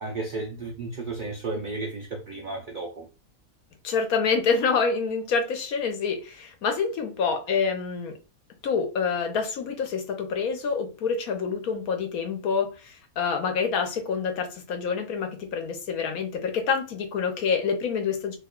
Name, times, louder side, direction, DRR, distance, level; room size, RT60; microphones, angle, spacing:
voice 1, 0.0-3.1 7.5-7.6, right 3 dB, 75° right, 0.4 m, -33 dB
voice 2, 3.8-8.1 8.6-18.4, left 5 dB, 75° left, 1.3 m, -27 dB
3.0 x 2.2 x 3.6 m
omnidirectional pair, 1.5 m